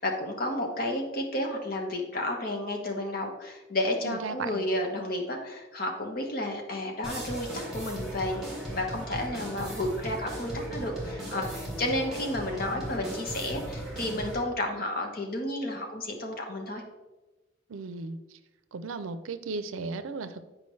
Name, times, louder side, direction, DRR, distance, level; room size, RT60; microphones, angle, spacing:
voice 1, 0.0-16.8, left 1 dB, 45° left, 2 dB, 1.0 m, -32 dB
voice 2, 4.0-4.6 17.7-18.2 18.7-20.4, right 4 dB, 85° right, 11 dB, 0.5 m, -35 dB
sound 1, 7.0-14.4, right 1 dB, ahead, 1.7 m, -37 dB
8.4 x 4.9 x 3.1 m, 1.1 s
head